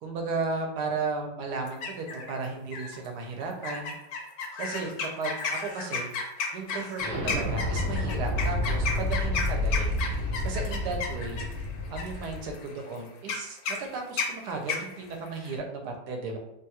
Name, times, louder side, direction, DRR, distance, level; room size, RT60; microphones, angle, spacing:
voice 1, 0.0-3.9 4.6-6.1 6.5-9.9 10.4-11.5 11.9-16.4, right 4 dB, 85° right, 3 dB, 1.2 m, -34 dB
sound 1, 1.6-2.3 2.7-3.1 3.6-15.6, left 4 dB, 70° left, 1.0 m, -34 dB
Explosion, 7.0-12.5, left 1 dB, 55° right, 1.1 m, -30 dB
3.2 x 2.3 x 2.8 m, 0.83 s
omnidirectional pair, 1.8 m